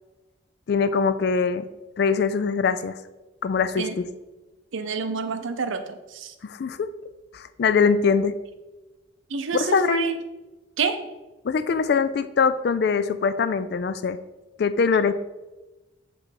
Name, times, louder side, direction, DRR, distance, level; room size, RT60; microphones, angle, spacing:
voice 1, 0.7-1.7 2.0-3.0 3.4-4.0 6.4-6.9 7.3-8.4 9.5-10.1 11.4-14.2 14.6-15.1, left 5 dB, 50° left, 12 dB, 0.3 m, -22 dB
voice 2, 4.7-6.3 9.3-10.2 10.8-11.1, right 5 dB, 75° right, 9 dB, 0.5 m, -28 dB
7.4 x 3.2 x 4.5 m, 1.1 s
head